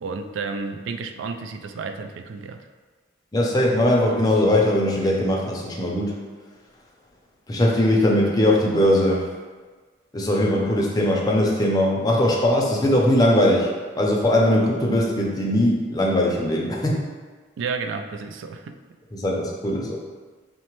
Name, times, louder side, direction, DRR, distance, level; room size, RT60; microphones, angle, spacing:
voice 1, 0.0-2.7 17.6-18.8, right 4 dB, 90° right, 7 dB, 0.3 m, -31 dB
voice 2, 3.3-6.1 7.5-9.3 10.1-13.7 14.0-17.0 19.1-20.0, left 1 dB, 20° left, -2 dB, 0.5 m, -20 dB
5.6 x 2.1 x 3.0 m, 1.4 s
head